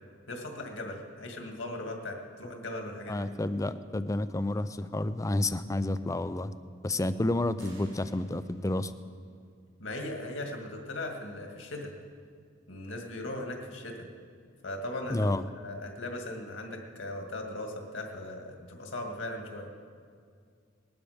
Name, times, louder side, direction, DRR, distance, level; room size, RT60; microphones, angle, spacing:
voice 1, 0.3-3.3 9.8-11.9 12.7-14.1 14.6-19.7, left 1 dB, 70° left, 2 dB, 2.0 m, -38 dB
voice 2, 3.1-6.5 6.8-8.9 15.1-15.4, left 2 dB, 15° left, 13 dB, 0.5 m, -30 dB
sound 1, 7.6-9.0, right 3 dB, 65° right, 4.6 m, -58 dB
20.0 x 12.5 x 5.0 m, 2.2 s
head